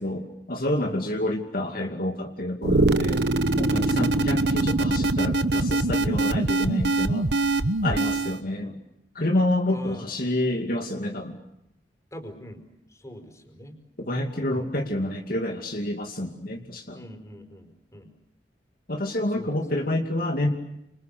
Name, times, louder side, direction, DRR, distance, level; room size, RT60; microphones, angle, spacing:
voice 1, 0.0-3.2 3.6-7.3 7.8-8.8 9.1-11.4 14.0-17.0 18.9-20.5, left 1 dB, 55° left, 2 dB, 2.6 m, -28 dB
sound 1, 2.6-8.4, right 2 dB, 65° right, 1.2 m, -23 dB
voice 2, 9.7-10.1 12.1-12.6 12.9-13.8 14.5-14.7 16.9-18.1 19.3-19.6, equal, 20° left, 6 dB, 5.3 m, -43 dB
29.5 x 27.5 x 6.8 m, 0.84 s
head